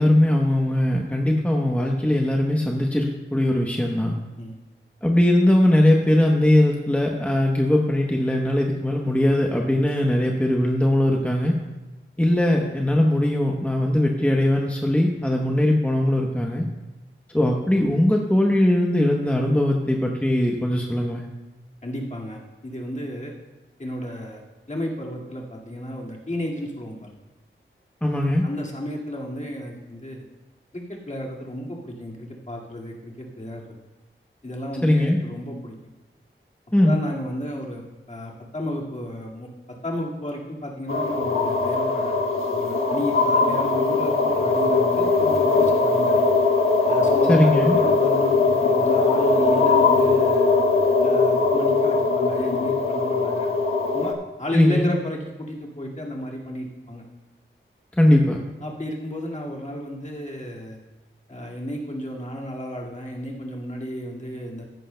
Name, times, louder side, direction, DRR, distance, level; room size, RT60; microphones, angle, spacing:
voice 1, 0.0-4.1 5.0-11.5 12.2-16.7 17.3-21.2 28.0-28.4 34.8-35.2 36.7-37.0 47.3-47.8 54.5-54.9 58.0-58.4, left 1 dB, 5° left, 0 dB, 0.9 m, -20 dB
voice 2, 21.8-23.3 23.8-24.4 24.7-27.1 28.2-30.3 30.7-33.6 34.4-35.8 36.8-37.8 38.1-39.5 39.8-46.2 46.9-50.5 51.0-53.5 53.9-57.0 58.6-60.8 61.3-64.6, equal, 35° left, -3 dB, 2.0 m, -32 dB
sound 1, 40.9-54.1, left 3 dB, 80° left, 1.2 m, -20 dB
14.5 x 11.0 x 2.2 m, 1.1 s
wide cardioid pair, 75°, 21 cm